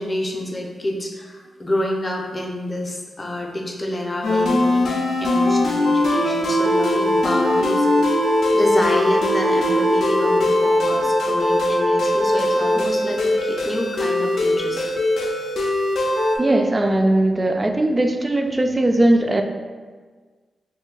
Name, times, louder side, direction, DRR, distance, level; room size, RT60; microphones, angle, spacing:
voice 1, 0.0-4.9 5.2-7.9 8.5-14.9, left 1 dB, 25° left, 1 dB, 0.5 m, -27 dB
sound 1, 4.2-16.4, left 1 dB, 80° left, 0.4 m, -20 dB
voice 2, 16.4-19.4, right 1 dB, 25° right, 5 dB, 0.3 m, -19 dB
2.6 x 2.6 x 3.8 m, 1.5 s
cardioid pair, 75°, 0 cm